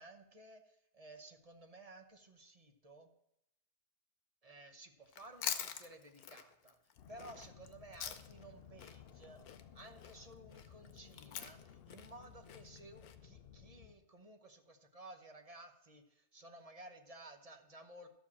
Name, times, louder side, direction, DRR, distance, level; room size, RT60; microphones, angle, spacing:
voice 1, 0.0-3.1 4.4-6.8 7.1-9.4 9.7-18.1, right 2 dB, 30° right, 6 dB, 0.8 m, -55 dB
Chewing mastication, 5.1-8.5 8.8-13.1, left 9 dB, 80° left, 1.3 m, -45 dB
sound 1, 7.0-13.9, left 8 dB, 55° left, 0.7 m, -58 dB
12.5 x 4.9 x 7.1 m, 0.81 s
omnidirectional pair, 1.6 m